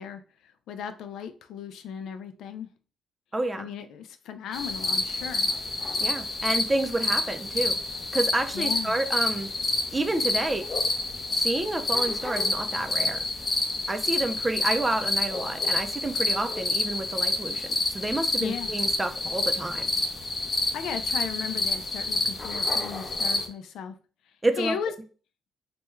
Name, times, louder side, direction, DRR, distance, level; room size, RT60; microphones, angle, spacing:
voice 1, 0.0-2.7 3.6-5.5 8.5-9.0 18.4-18.7 20.7-23.9 24.6-24.9, left 7 dB, 80° left, 9 dB, 0.4 m, -36 dB
voice 2, 3.3-3.7 6.0-7.8 8.1-9.5 9.9-10.6 11.3-13.2 13.9-17.7 17.9-19.9 24.4-24.8, right 2 dB, 20° right, 8 dB, 0.5 m, -29 dB
sound 1, 4.5-23.5, left 2 dB, 35° left, 0.7 m, -28 dB
3.3 x 2.3 x 3.1 m, 0.38 s
cardioid pair, 90°, 0 cm